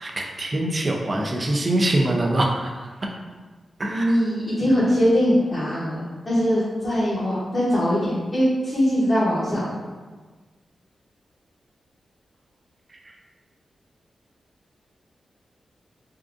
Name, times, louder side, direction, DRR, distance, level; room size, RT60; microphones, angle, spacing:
voice 1, 0.0-2.6 3.8-4.1, right 1 dB, 35° right, 1 dB, 0.4 m, -23 dB
voice 2, 3.9-6.0 6.3-9.7, equal, 30° left, -10 dB, 0.8 m, -21 dB
3.6 x 2.5 x 2.4 m, 1.4 s
wide cardioid pair, 130°, 0 cm